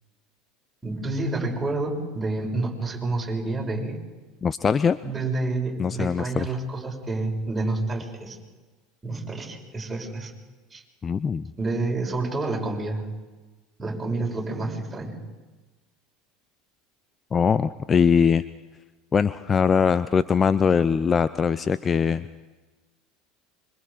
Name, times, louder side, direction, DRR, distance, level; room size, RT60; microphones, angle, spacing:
voice 1, 0.8-4.0 5.0-8.4 9.0-10.3 10.7-10.8 11.6-13.1 13.8-15.2, right 2 dB, 15° right, -1 dB, 6.7 m, -29 dB
voice 2, 4.4-5.0 5.8-6.5 11.0-11.5 17.3-18.4 19.1-22.4, left 6 dB, 25° left, 15 dB, 0.6 m, -21 dB
25.5 x 25.0 x 5.1 m, 1.2 s
figure-of-eight pair, 75°, 0 cm